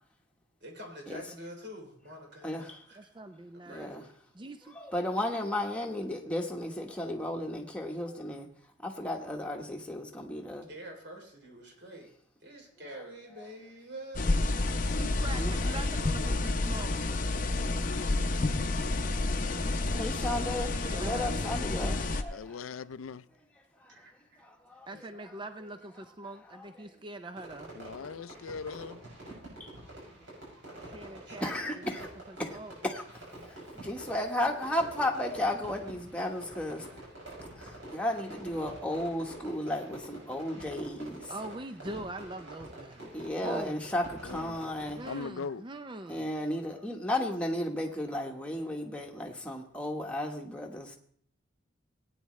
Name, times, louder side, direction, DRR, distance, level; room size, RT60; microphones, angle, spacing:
voice 1, 0.6-3.1 3.7-4.2 10.7-12.1 12.4-14.3 15.2-15.6 23.9-24.5 31.2-31.4 46.4-46.5, equal, 55° right, 3.1 m, -47 dB
voice 2, 2.4-2.8 3.7-4.0 4.7-8.5 8.8-10.7 15.3-15.5 19.9-22.6 23.8-23.9 24.4-24.9 26.6-26.7 28.0-28.1 29.6-29.8 31.4-32.1 32.4-32.6 32.8-33.0 33.5-36.8 37.6-41.3 43.1-45.0 46.1-51.0, left 1 dB, 5° left, 1.2 m, -34 dB
voice 3, 3.0-3.9 4.4-4.8 14.9-16.9 20.1-21.3 24.9-27.7 30.8-31.8 32.3-32.7 41.3-43.8 44.9-46.3, right 2 dB, 25° right, 0.4 m, -43 dB
sound 1, 14.1-22.2, left 2 dB, 40° left, 0.7 m, -30 dB
voice 4, 22.3-23.2 27.8-29.0 44.2-44.6 45.0-45.6, left 5 dB, 90° left, 0.4 m, -40 dB
Fireworks, 27.4-45.3, right 1 dB, 70° right, 6.6 m, -47 dB
18.0 x 9.4 x 3.2 m
head